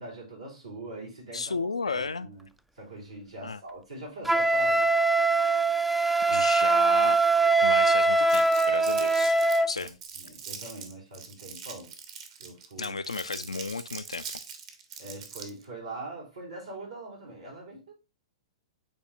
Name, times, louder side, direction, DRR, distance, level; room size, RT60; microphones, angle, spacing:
voice 1, 0.0-2.5 2.7-4.9 9.8-11.9 12.4-13.0 15.0-17.9, right 2 dB, 80° right, 3.7 m, -42 dB
voice 2, 1.3-2.3 3.4-3.6 5.4-5.7 6.3-7.2 7.6-9.4 9.7-9.9 12.8-14.2, left 4 dB, 85° left, 0.4 m, -33 dB
Wind instrument woodwind instrument, 4.2-9.7, right 3 dB, 5° right, 0.3 m, -22 dB
Crumpling crinkling, 8.3-15.7, right 6 dB, 50° right, 1.4 m, -42 dB
8.9 x 4.1 x 2.7 m
figure-of-eight pair, 110°, 3 cm